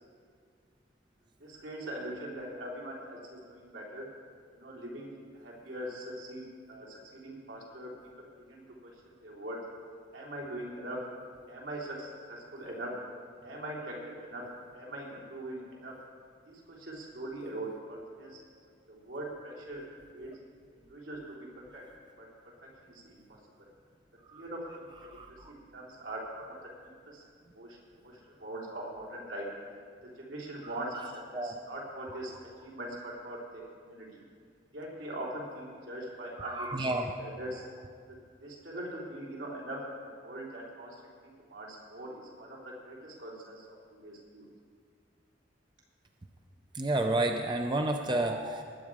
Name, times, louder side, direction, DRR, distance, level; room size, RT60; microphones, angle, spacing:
voice 1, 1.4-4.1 4.5-7.9 8.4-8.9 9.2-9.6 10.1-11.0 11.5-13.0 13.4-14.4 14.7-15.9 16.5-18.4 18.9-20.3 20.8-21.5 21.7-21.8 22.2-22.3 22.6-23.2 23.6-23.7 24.3-24.9 25.5-26.7 27.1-27.2 27.5-29.5 30.2-32.3 32.6-34.2 34.7-36.9 37.2-37.6 38.4-41.0 41.5-43.8 44.0-44.5, right 1 dB, 85° right, -4 dB, 3.7 m, -42 dB
voice 2, 30.6-31.0 31.3-31.5 36.4-37.1 46.7-48.6, right 2 dB, 25° right, 4 dB, 0.5 m, -30 dB
20.0 x 8.5 x 4.9 m, 2.1 s
head